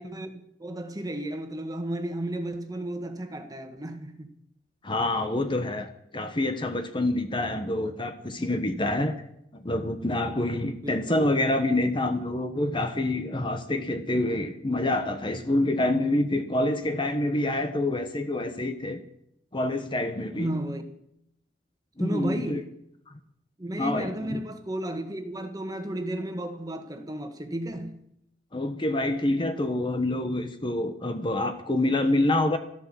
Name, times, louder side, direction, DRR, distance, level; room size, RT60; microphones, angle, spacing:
voice 1, 0.0-4.3 10.8-11.3 20.3-20.8 22.0-22.7 23.6-28.0, right 1 dB, 20° right, 1.6 m, -33 dB
voice 2, 4.8-9.1 9.5-19.0 19.5-20.5 22.0-22.6 23.8-24.4 28.5-32.6, left 1 dB, 30° left, 1.1 m, -27 dB
14.0 x 12.0 x 7.5 m
head